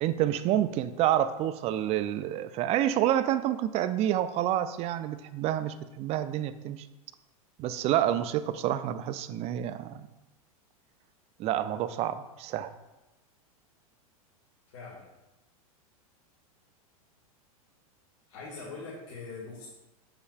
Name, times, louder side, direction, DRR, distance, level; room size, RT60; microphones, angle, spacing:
voice 1, 0.0-6.9 7.6-10.1 11.4-12.7, right 12 dB, 35° right, 13 dB, 0.4 m, -28 dB
voice 2, 14.7-15.1 18.3-19.7, left 4 dB, 60° left, -7 dB, 1.8 m, -42 dB
7.7 x 5.4 x 2.4 m, 1.0 s
hypercardioid pair, 100°, 19 cm